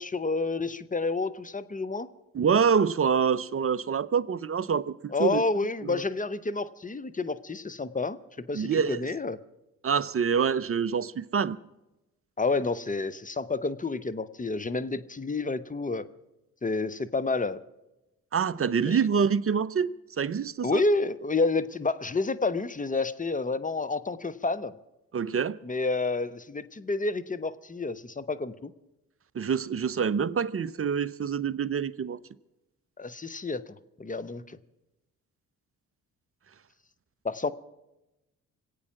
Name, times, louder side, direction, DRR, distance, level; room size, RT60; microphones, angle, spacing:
voice 1, 0.0-2.1 5.1-8.2 8.5-9.4 12.4-16.0 16.6-17.6 18.8-19.0 20.6-24.7 25.6-28.7 33.0-34.6 37.2-37.5, left 3 dB, 20° left, 1.0 m, -29 dB
voice 2, 2.3-5.4 5.8-6.0 8.5-9.0 9.8-11.6 18.3-20.8 25.1-25.6 29.3-32.2, right 6 dB, 30° right, 0.7 m, -26 dB
25.5 x 8.6 x 6.0 m
hypercardioid pair, 40°, 43 cm